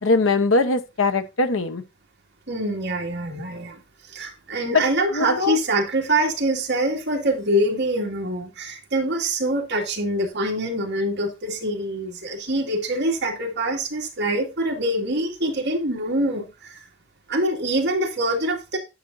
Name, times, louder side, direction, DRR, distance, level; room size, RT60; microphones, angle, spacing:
voice 1, 0.0-1.8 4.7-4.8 5.1-5.6, left 3 dB, 70° left, 0.9 m, -21 dB
voice 2, 2.5-3.8 4.1-16.8 17.3-18.8, right 1 dB, 55° right, 2.2 m, -24 dB
10.0 x 6.5 x 2.6 m
head